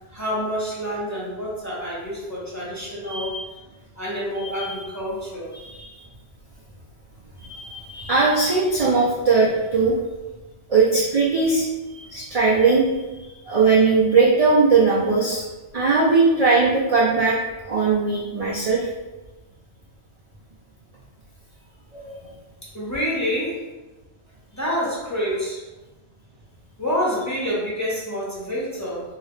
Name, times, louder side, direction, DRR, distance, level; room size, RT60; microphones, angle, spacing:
voice 1, 0.1-3.3 3.9-5.5 22.7-23.6 24.5-25.6 26.8-29.0, equal, 15° left, -8 dB, 0.9 m, -27 dB
voice 2, 3.0-3.4 4.4-4.7 5.5-5.8 7.7-9.9 10.7-11.7 11.9-12.8 13.5-15.4 15.7-17.4 17.7-18.9 22.0-22.2, right 4 dB, 65° right, -6 dB, 0.3 m, -19 dB
2.9 x 2.8 x 3.1 m, 1.2 s
omnidirectional pair, 1.2 m